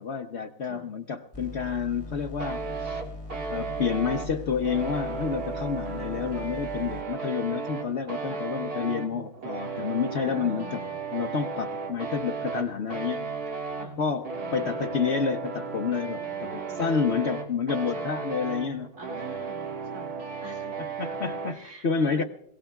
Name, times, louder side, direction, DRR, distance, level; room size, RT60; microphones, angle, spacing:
voice 1, 0.0-3.0 3.5-10.8 11.1-13.3 14.0-16.5 16.8-18.9 21.0-22.2, left 6 dB, 55° left, 5 dB, 1.0 m, -29 dB
sound 1, 1.3-7.1, left 2 dB, 15° left, 1.3 m, -40 dB
sound 2, 2.4-21.6, right 4 dB, 80° right, 2.4 m, -35 dB
voice 2, 10.2-11.0 13.8-14.0 14.4-14.8 16.1-17.0 17.9-18.1 19.0-20.1 20.4-20.9 21.4-22.2, left 1 dB, 55° right, 0 dB, 2.9 m, -45 dB
26.5 x 17.5 x 2.3 m, 0.72 s
omnidirectional pair, 1.6 m